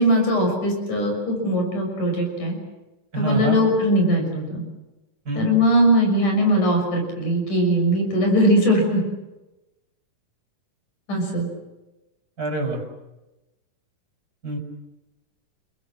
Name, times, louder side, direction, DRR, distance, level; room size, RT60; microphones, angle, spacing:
voice 1, 0.0-2.6 3.2-4.6 5.4-9.0 11.1-11.5, equal, 70° left, 2 dB, 7.7 m, -20 dB
voice 2, 3.1-3.6 5.3-5.5 12.4-12.8 14.4-14.6, right 3 dB, 25° right, 1 dB, 5.9 m, -25 dB
29.5 x 22.0 x 7.5 m, 1.0 s
omnidirectional pair, 3.8 m